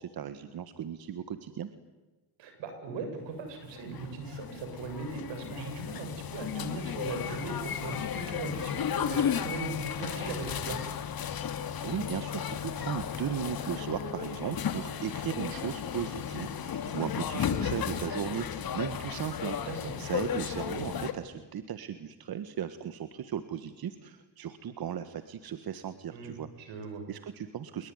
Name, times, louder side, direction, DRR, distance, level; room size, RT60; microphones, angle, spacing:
voice 1, 0.0-1.7 11.8-26.7 27.1-27.9, right 9 dB, 55° right, 11 dB, 1.7 m, -37 dB
voice 2, 2.4-8.8 9.1-10.9 19.7-20.0 26.1-26.3 26.7-27.0, right 3 dB, 80° right, 7 dB, 7.0 m, -39 dB
sound 1, 3.6-21.1, left 8 dB, 55° left, 2.6 m, -34 dB
sound 2, 5.3-11.2, left 4 dB, 30° left, 4.5 m, -54 dB
26.5 x 22.0 x 9.8 m, 1.2 s
cardioid pair, 85°, 43 cm